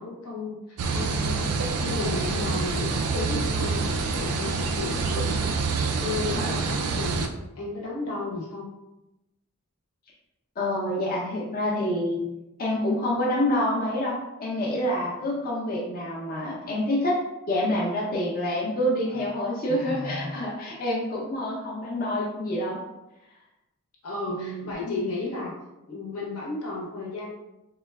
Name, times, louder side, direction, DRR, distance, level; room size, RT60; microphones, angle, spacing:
voice 1, 0.0-5.6 6.0-7.3 7.5-8.7 19.7-20.4 24.0-25.6 25.9-27.3, left 3 dB, 80° left, -3 dB, 0.8 m, -33 dB
sound 1, 0.8-7.3, right 4 dB, 85° right, 0.3 m, -27 dB
voice 2, 10.6-12.3 12.6-17.2 17.5-22.8 24.3-25.3, left 1 dB, 40° left, -5 dB, 0.5 m, -27 dB
3.6 x 2.2 x 2.2 m, 0.96 s
head